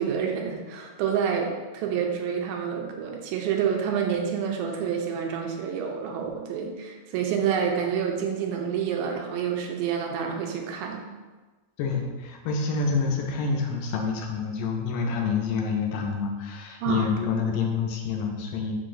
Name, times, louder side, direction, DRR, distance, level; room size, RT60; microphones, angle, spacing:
voice 1, 0.0-11.0 16.8-17.1, right 7 dB, 90° right, 2 dB, 2.4 m, -28 dB
voice 2, 11.8-18.8, left 5 dB, 80° left, 1 dB, 2.0 m, -27 dB
5.4 x 3.8 x 2.5 m, 1.3 s
omnidirectional pair, 4.2 m